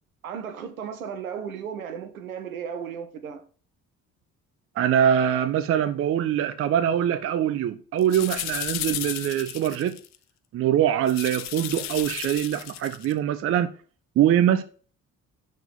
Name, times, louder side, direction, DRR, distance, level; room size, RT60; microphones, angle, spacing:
voice 1, 0.2-3.4, right 7 dB, 80° right, 0.7 m, -35 dB
voice 2, 4.8-10.0 10.5-13.7 14.2-14.6, right 10 dB, 35° right, 0.5 m, -23 dB
sound 1, 8.0-10.2 11.1-13.1, left 14 dB, 40° left, 0.4 m, -34 dB
5.8 x 4.6 x 4.1 m
figure-of-eight pair, 45°, 42 cm